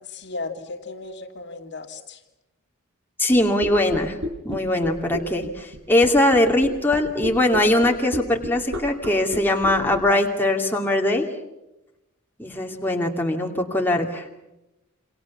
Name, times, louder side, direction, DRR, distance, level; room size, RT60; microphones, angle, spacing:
voice 1, 0.0-2.2, left 3 dB, 55° left, 4 dB, 2.6 m, -35 dB
voice 2, 3.2-4.2 4.4-11.3 12.4-14.3, left 1 dB, 10° left, 1 dB, 2.5 m, -21 dB
sound 1, 3.3-10.0, equal, 60° right, 6.3 m, -30 dB
28.5 x 26.0 x 7.3 m, 0.97 s
head